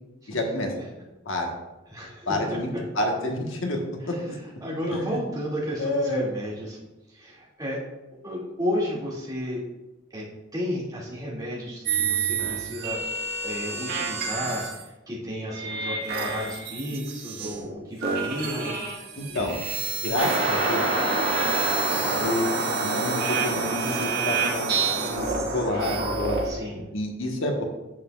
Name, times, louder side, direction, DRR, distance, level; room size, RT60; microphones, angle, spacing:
voice 1, 0.3-0.7 1.3-1.5 2.3-2.7 2.9-3.8 4.1-4.3 4.9-5.1 5.8-6.2 19.2-19.6 19.9-20.9 22.2-22.5 22.8-26.4 26.9-27.6, left 1 dB, 85° left, 2 dB, 1.3 m, -28 dB
voice 2, 1.9-2.8 4.0-6.8 7.1-7.8 8.2-9.6 10.1-10.3 10.5-13.0 13.4-19.0 26.4-26.8, equal, 20° right, -5 dB, 2.3 m, -32 dB
sound 1, 11.9-14.8 15.5-17.7 18.0-26.5, right 5 dB, 50° right, 1.7 m, -30 dB
sound 2, 20.1-26.1, right 1 dB, 70° right, 1.8 m, -27 dB
9.8 x 7.5 x 2.4 m, 1.0 s
head